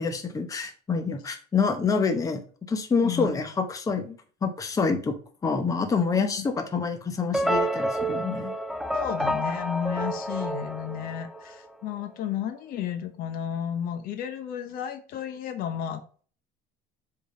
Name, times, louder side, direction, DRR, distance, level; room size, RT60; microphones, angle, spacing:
voice 1, 0.0-2.4 2.7-4.1 4.4-5.2 5.4-8.5, left 5 dB, 20° left, 6 dB, 0.9 m, -27 dB
sound 1, 7.3-11.7, right 1 dB, ahead, 0.5 m, -29 dB
voice 2, 8.9-16.0, left 9 dB, 60° left, 9 dB, 1.0 m, -32 dB
7.2 x 3.9 x 3.7 m, 0.41 s
cardioid pair, 140°, 17 cm